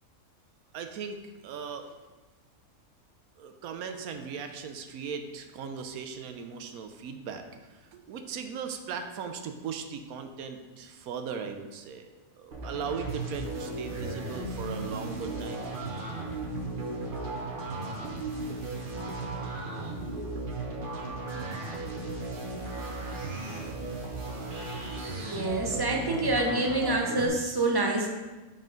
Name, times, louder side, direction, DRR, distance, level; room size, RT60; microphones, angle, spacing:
voice 1, 0.7-1.2 1.4-2.0 3.4-12.1 12.4-15.7, right 6 dB, 85° right, 6 dB, 1.1 m, -38 dB
sound 1, 12.5-27.3, right 2 dB, 40° right, 0.9 m, -36 dB
voice 2, 25.2-28.1, right 2 dB, 25° right, 0 dB, 0.5 m, -27 dB
5.5 x 3.7 x 5.1 m, 1.2 s
omnidirectional pair, 1.5 m